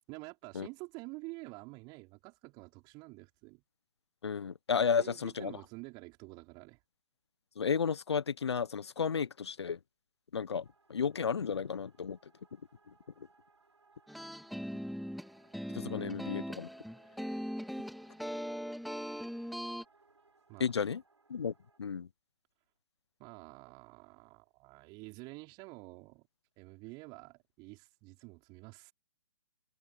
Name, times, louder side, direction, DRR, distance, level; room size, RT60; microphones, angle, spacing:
voice 1, 0.1-3.6 5.0-6.8 20.5-20.7 23.2-26.3 26.6-28.9, right 26 dB, 30° right, 5.1 m, -49 dB
voice 2, 4.2-5.6 7.6-9.8 10.3-12.2 12.9-13.3 15.7-16.7 20.6-21.0 21.3-22.1, left 6 dB, 65° left, 1.1 m, -33 dB
sound 1, 10.6-21.8, right 3 dB, 75° right, 5.7 m, -67 dB
sound 2, 14.1-19.8, equal, ahead, 1.1 m, -40 dB
figure-of-eight pair, 120°, 15 cm